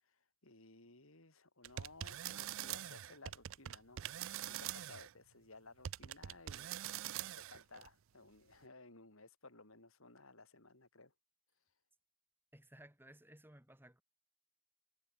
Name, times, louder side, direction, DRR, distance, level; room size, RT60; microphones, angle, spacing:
voice 1, 0.0-11.1, left 3 dB, 70° left, 4.8 m, -59 dB
sound 1, 1.6-5.1 5.8-7.9, right 12 dB, 65° right, 0.4 m, -44 dB
voice 2, 12.5-14.0, right 1 dB, 10° right, 3.9 m, -59 dB
head